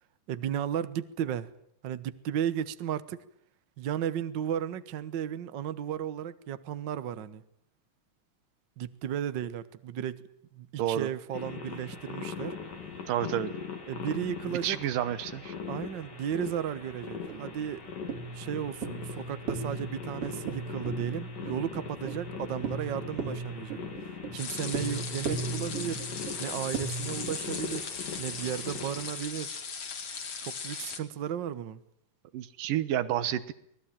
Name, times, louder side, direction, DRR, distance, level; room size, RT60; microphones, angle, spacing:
voice 1, 0.3-1.5 1.8-3.2 3.8-7.4 8.8-10.2 10.5-12.5 13.9-14.8 15.7-17.8 18.3-23.8 24.3-26.0 26.4-27.9 28.2-29.5 30.4-31.8, right 9 dB, 65° right, 1.1 m, -34 dB
voice 2, 10.8-11.1 13.1-13.5 14.5-15.5 32.3-33.5, right 11 dB, 85° right, 2.8 m, -30 dB
sound 1, 11.3-29.1, left 6 dB, 80° left, 4.5 m, -41 dB
sound 2, 17.3-27.4, right 4 dB, 45° right, 3.0 m, -37 dB
sound 3, 24.4-31.0, left 5 dB, 45° left, 2.7 m, -38 dB
25.5 x 19.5 x 8.9 m
omnidirectional pair, 3.7 m